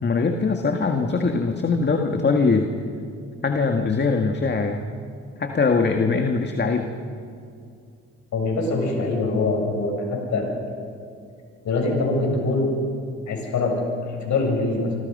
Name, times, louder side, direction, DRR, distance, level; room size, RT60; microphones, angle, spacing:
voice 1, 0.0-2.7 3.4-4.8 5.4-6.9, left 4 dB, 35° left, 4 dB, 1.8 m, -22 dB
voice 2, 8.3-10.5 11.6-12.7 13.3-13.8 14.1-14.9, left 3 dB, 70° left, 1 dB, 7.4 m, -23 dB
27.0 x 26.5 x 5.5 m, 2.3 s
cardioid pair, 90°, 30 cm